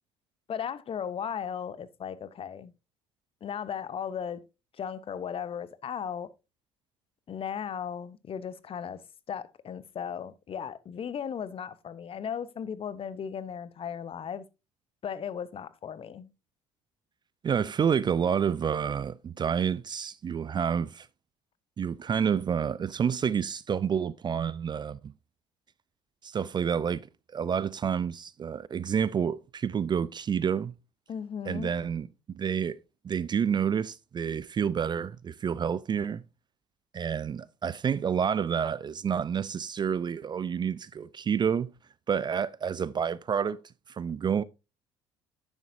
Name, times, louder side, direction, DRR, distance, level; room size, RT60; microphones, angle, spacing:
voice 1, 0.5-2.7 3.4-4.5 4.8-6.3 7.3-9.0 9.3-14.4 15.0-16.3 31.1-31.7, left 8 dB, 40° left, 0.7 m, -36 dB
voice 2, 17.4-21.1 21.8-25.1 26.2-27.0 27.3-30.7 31.5-32.1 32.3-32.8 33.0-36.2 36.9-41.7 42.1-43.6 43.9-44.4, right 7 dB, 30° right, 0.4 m, -29 dB
9.9 x 7.2 x 2.6 m
hypercardioid pair, 55°, 15 cm